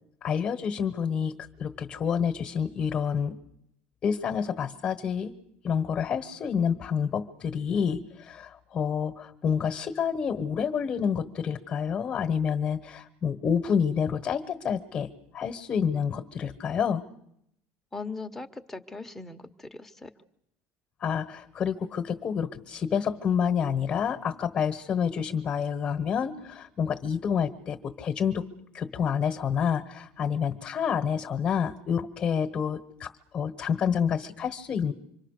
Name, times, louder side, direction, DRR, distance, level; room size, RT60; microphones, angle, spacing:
voice 1, 0.2-1.3 1.6-3.4 4.0-5.3 5.6-17.0 21.0-28.4 28.7-34.9, left 7 dB, 30° left, 6 dB, 1.2 m, -28 dB
voice 2, 17.9-20.1, left 3 dB, 5° left, 5 dB, 1.0 m, -39 dB
26.0 x 23.5 x 6.6 m, 0.79 s
cardioid pair, 145°, 5 cm